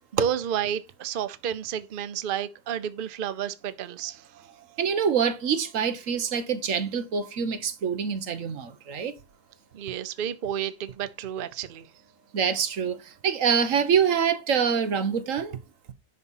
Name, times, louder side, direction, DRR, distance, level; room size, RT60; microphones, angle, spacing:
voice 1, 0.2-4.5 9.7-11.9, right 9 dB, 90° right, 0.4 m, -31 dB
voice 2, 4.8-9.1 12.3-15.6, right 7 dB, 55° right, 1.2 m, -25 dB
11.0 x 4.1 x 5.5 m
omnidirectional pair, 1.9 m